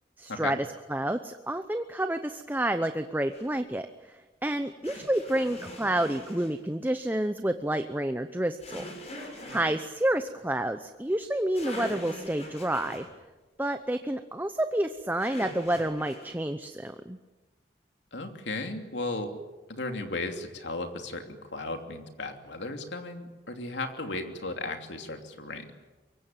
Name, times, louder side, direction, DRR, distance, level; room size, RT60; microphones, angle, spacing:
voice 1, 0.2-0.6 0.9-4.1 4.4-8.8 9.5-13.1 13.6-17.2, right 1 dB, 10° right, 8 dB, 0.8 m, -29 dB
sound 1, 3.3-3.5 4.8-6.5 8.6-9.8 11.2-11.3 11.5-13.1 15.2-16.3, left 1 dB, 35° left, 6.9 m, -42 dB
voice 2, 18.1-19.3 19.7-21.2 21.5-25.7, left 2 dB, 85° left, 5 dB, 3.0 m, -35 dB
25.0 x 22.5 x 9.2 m, 1.2 s
head